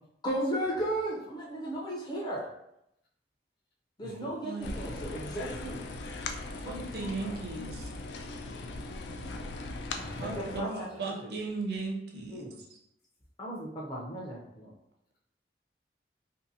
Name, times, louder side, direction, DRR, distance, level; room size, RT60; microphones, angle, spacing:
voice 1, 0.2-2.5 4.0-5.8 6.6-7.4 10.2-11.3 12.3-12.6 13.4-14.7, right 1 dB, 25° left, -5 dB, 0.5 m, -35 dB
sound 1, 4.6-10.6, left 2 dB, 75° left, 0.3 m, -39 dB
voice 2, 6.5-7.9 10.2-10.7 11.0-12.4, right 3 dB, 65° right, 0 dB, 0.6 m, -36 dB
voice 3, 8.8-11.0, left 1 dB, 60° left, -3 dB, 0.8 m, -47 dB
2.7 x 2.5 x 2.6 m, 0.81 s
head